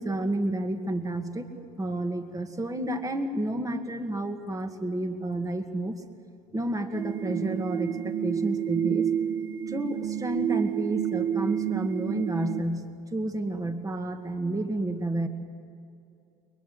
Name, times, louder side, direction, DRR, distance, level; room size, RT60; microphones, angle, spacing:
voice 1, 0.0-1.5 1.8-5.9 6.5-9.1 9.7-15.3, right 1 dB, 15° right, 6 dB, 2.1 m, -30 dB
sound 1, 6.9-12.6, right 9 dB, 70° right, 1.2 m, -29 dB
29.5 x 22.5 x 7.9 m, 2.5 s
supercardioid pair, 90°, 20 cm